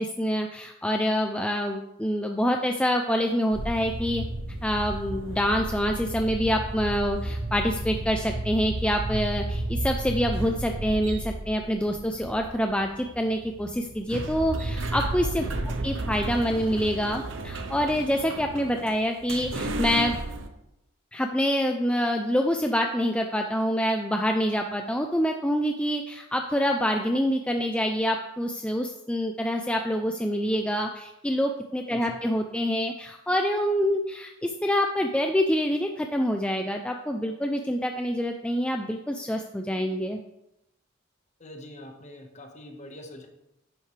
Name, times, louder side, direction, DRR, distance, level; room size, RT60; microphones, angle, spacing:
voice 1, 0.0-4.2 4.6-15.4 15.8-20.2 21.1-40.2, equal, 5° left, 3 dB, 0.4 m, -26 dB
sound 1, 3.5-20.5, right 2 dB, 70° right, 0.9 m, -33 dB
voice 2, 31.9-32.2 41.4-43.3, left 1 dB, 35° left, 3 dB, 1.4 m, -44 dB
10.5 x 8.8 x 3.3 m, 0.89 s
head